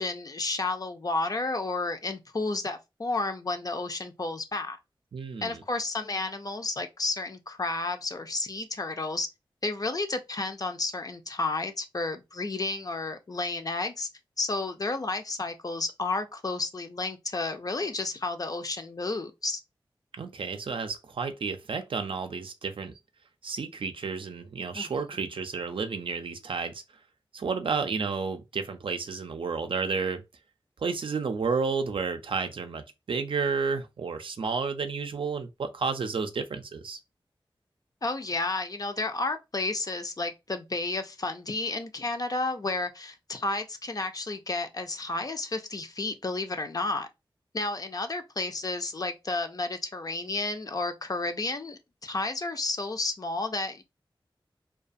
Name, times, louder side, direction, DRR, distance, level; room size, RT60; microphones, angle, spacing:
voice 1, 0.0-4.8 5.4-9.3 9.6-14.1 14.4-19.6 24.7-24.9 38.0-47.1 47.5-53.8, left 3 dB, 45° left, 0.4 m, -31 dB
voice 2, 5.1-5.6 20.2-23.0 23.4-26.8 27.3-30.2 30.8-37.0, right 5 dB, 75° right, 0.4 m, -31 dB
2.3 x 2.3 x 2.5 m
wide cardioid pair, 60°, 9 cm